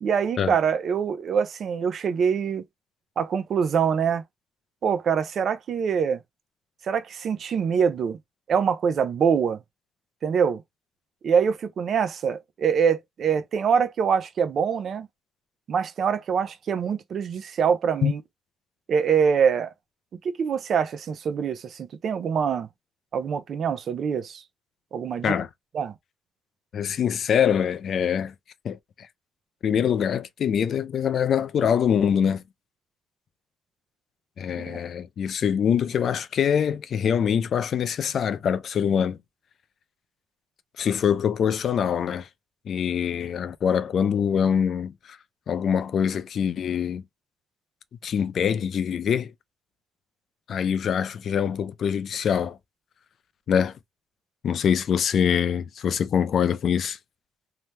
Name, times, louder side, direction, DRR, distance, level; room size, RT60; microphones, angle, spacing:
voice 1, 0.0-2.6 3.2-4.2 4.8-6.2 6.9-8.2 8.5-9.6 10.2-10.6 11.2-15.1 15.7-18.2 18.9-19.7 20.2-22.7 23.1-24.4 24.9-25.3 25.7-25.9 34.6-34.8, right 7 dB, 60° right, 0.6 m, -24 dB
voice 2, 26.7-28.3 28.6-29.1 29.6-32.4 34.4-39.2 40.8-42.3 42.7-45.2 45.5-47.0 48.0-49.3 50.5-52.6 53.5-53.8 54.4-57.0, left 8 dB, 60° left, 0.4 m, -24 dB
2.7 x 2.1 x 3.2 m
cardioid pair, 90°, 0 cm